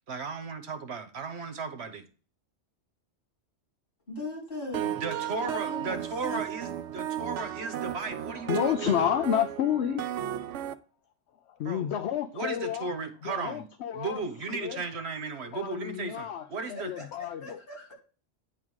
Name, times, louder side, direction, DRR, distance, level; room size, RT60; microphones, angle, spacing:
voice 1, 0.1-2.1 5.0-9.1 11.6-13.7 13.9-16.9, right 4 dB, 65° right, 1.3 m, -36 dB
voice 2, 4.1-5.1 5.4-6.0 6.3-6.4 17.0-17.1 17.4-17.9, left 2 dB, 50° left, 4.3 m, -39 dB
sound 1, 4.7-10.7, right 11 dB, 85° right, 1.0 m, -34 dB
voice 3, 8.5-10.0 11.6-12.9 13.2-14.2 14.5-14.8 15.5-16.4 16.8-17.6, left 10 dB, 70° left, 0.9 m, -29 dB
9.5 x 3.6 x 6.3 m
omnidirectional pair, 1.2 m